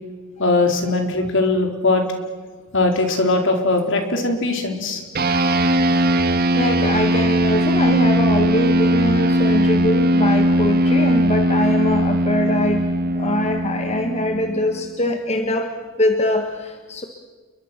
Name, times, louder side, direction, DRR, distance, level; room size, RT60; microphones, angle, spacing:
voice 1, 0.4-2.0 2.7-5.0, left 2 dB, 60° left, 4 dB, 3.9 m, -20 dB
sound 1, 5.1-14.9, right 1 dB, 45° right, 1.4 m, -19 dB
voice 2, 6.5-12.9 13.2-17.0, left 1 dB, 30° left, 5 dB, 1.6 m, -23 dB
29.5 x 23.0 x 6.0 m, 1.4 s
head